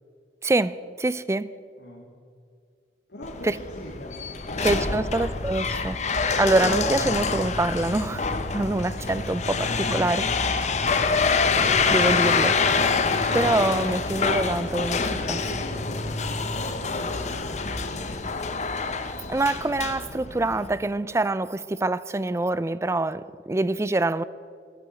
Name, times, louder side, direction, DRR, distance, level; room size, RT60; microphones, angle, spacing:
voice 1, 0.4-1.5 3.4-3.5 4.6-6.0 6.4-10.3 11.6-12.9 13.3-15.4 19.3-24.2, right 2 dB, 15° right, 0.4 m, -25 dB
voice 2, 1.8-2.1 3.1-5.0 15.2-18.3, equal, 70° left, 2.7 m, -41 dB
sound 1, 3.2-20.7, left 4 dB, 40° left, 0.9 m, -26 dB
12.5 x 11.5 x 7.7 m
head